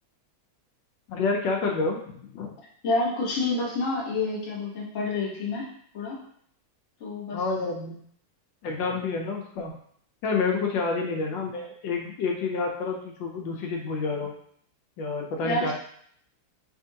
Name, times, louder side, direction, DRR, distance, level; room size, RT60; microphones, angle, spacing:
voice 1, 1.1-2.5 7.3-8.0 8.6-9.7 10.2-14.3 15.0-15.7, left 4 dB, 70° left, 1 dB, 1.2 m, -29 dB
voice 2, 2.8-6.2 7.0-7.4 15.4-15.7, left 2 dB, 40° left, -4 dB, 1.3 m, -28 dB
4.4 x 3.5 x 2.7 m, 0.64 s
omnidirectional pair, 2.3 m